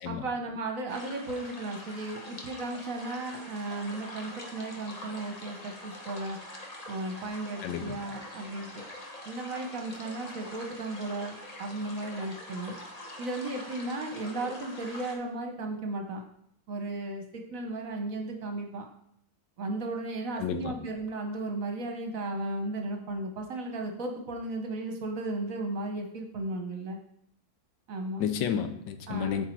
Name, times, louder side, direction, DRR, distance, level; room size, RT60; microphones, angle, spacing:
voice 1, 0.1-6.4 6.9-8.8 9.3-12.8 13.2-16.2 16.7-18.9 19.6-27.0 27.9-28.2 29.1-29.4, right 2 dB, 55° right, 3 dB, 1.2 m, -35 dB
sound 1, 0.9-15.2, left 1 dB, 30° left, 0.9 m, -44 dB
voice 2, 7.6-8.0 20.4-20.7 28.2-29.5, left 8 dB, 85° left, 9 dB, 1.4 m, -31 dB
8.0 x 4.4 x 4.5 m, 0.70 s
omnidirectional pair, 2.0 m